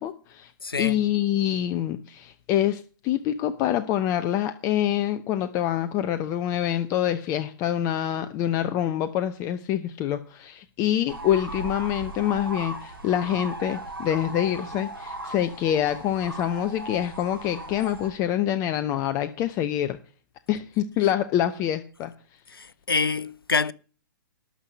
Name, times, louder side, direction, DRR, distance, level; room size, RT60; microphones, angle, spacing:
voice 1, 0.0-0.5 0.8-20.0 20.5-22.1, left 11 dB, 25° left, 0.8 m, -26 dB
voice 2, 0.6-1.0 22.5-23.7, left 4 dB, 85° left, 0.7 m, -26 dB
sound 1, 11.1-18.1, right 1 dB, 85° right, 3.9 m, -37 dB
12.5 x 5.7 x 6.9 m
figure-of-eight pair, 120°, 12 cm